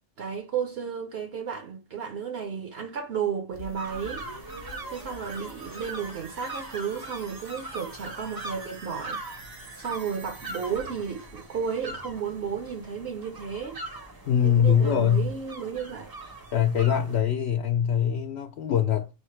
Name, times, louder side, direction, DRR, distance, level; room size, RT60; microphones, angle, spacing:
voice 1, 0.2-4.3 4.9-9.2 9.7-13.8 14.4-16.1, right 7 dB, 60° right, 0.8 m, -33 dB
sound 1, 3.5-13.2 13.6-13.7, right 2 dB, 85° right, 1.7 m, -46 dB
sound 2, 3.7-17.2, right 2 dB, 25° right, 0.6 m, -42 dB
voice 2, 14.3-15.3 16.5-19.1, left 8 dB, 70° left, 0.8 m, -23 dB
6.2 x 2.1 x 3.0 m
omnidirectional pair, 1.2 m